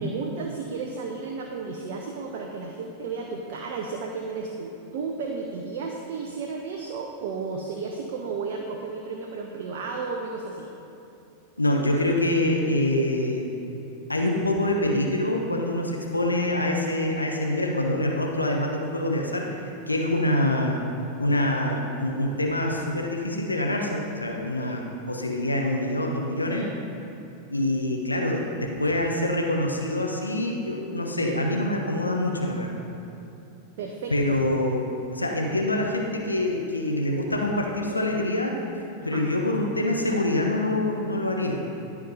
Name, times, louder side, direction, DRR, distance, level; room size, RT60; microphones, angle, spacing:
voice 1, 0.0-10.7 16.9-17.1 24.6-24.7 26.5-26.6 33.8-34.1 39.0-39.3, right 4 dB, 50° right, 1 dB, 0.8 m, -33 dB
voice 2, 11.6-13.5 14.1-20.8 21.2-26.7 27.5-32.7 34.1-38.6 39.0-41.6, left 1 dB, 80° left, 1 dB, 0.9 m, -25 dB
12.0 x 5.0 x 5.5 m, 2.8 s
figure-of-eight pair, 90°, 0 cm